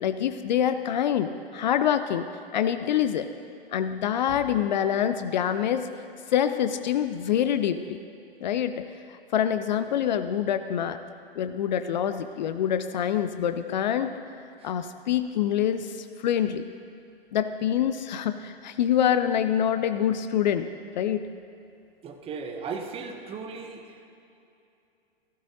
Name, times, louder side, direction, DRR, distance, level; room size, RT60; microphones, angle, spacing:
voice 1, 0.0-2.3 2.5-3.3 3.7-5.9 6.3-8.0 8.4-11.0 11.4-14.1 14.6-16.6 17.3-20.7 21.0-21.3, left 9 dB, 45° left, 10 dB, 0.5 m, -26 dB
voice 2, 22.0-23.9, right 5 dB, 20° right, 5 dB, 0.9 m, -36 dB
15.5 x 15.0 x 2.7 m, 2.6 s
figure-of-eight pair, 105°, 31 cm